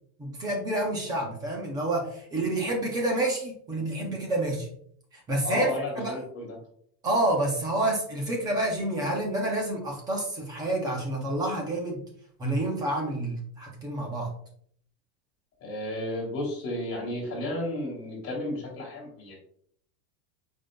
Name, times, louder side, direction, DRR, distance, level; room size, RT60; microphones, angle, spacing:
voice 1, 0.2-4.7 5.1-6.2 7.0-12.0 12.4-14.3, right 1 dB, 10° right, 0 dB, 0.3 m, -28 dB
voice 2, 5.4-6.5 15.6-19.4, left 1 dB, 30° left, -2 dB, 2.7 m, -32 dB
8.6 x 5.1 x 2.2 m, 0.63 s
supercardioid pair, 160°, 49 cm